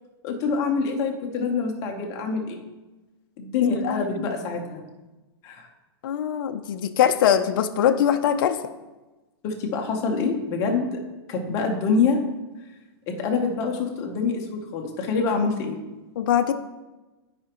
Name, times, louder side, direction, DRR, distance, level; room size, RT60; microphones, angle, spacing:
voice 1, 0.2-2.6 3.4-4.8 5.4-5.7 9.4-11.0 11.3-12.2 13.1-15.8, left 4 dB, 20° left, 2 dB, 0.8 m, -25 dB
voice 2, 3.6-4.3 6.0-8.7 16.2-16.5, left 9 dB, 55° left, 7 dB, 0.5 m, -22 dB
13.0 x 5.0 x 2.9 m, 1.1 s
supercardioid pair, 175°, 14 cm